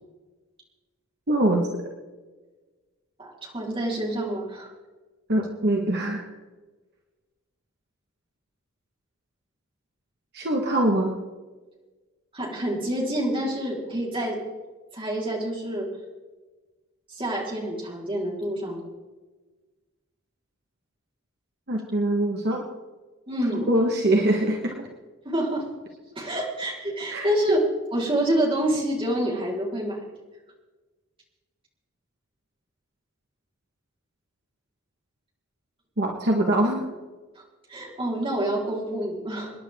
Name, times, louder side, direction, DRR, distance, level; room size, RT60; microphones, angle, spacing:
voice 1, 1.3-1.7 5.3-6.3 10.3-11.2 21.7-22.6 23.5-24.8 27.1-27.3 36.0-36.8, right 1 dB, 50° right, 1 dB, 1.6 m, -23 dB
voice 2, 3.2-4.7 12.3-14.4 14.9-15.9 17.1-18.9 23.3-23.7 25.2-25.6 26.2-27.6 27.9-30.0 37.4-37.5 37.7-39.5, right 1 dB, 25° right, -3 dB, 4.4 m, -27 dB
27.5 x 10.5 x 3.7 m, 1.3 s
head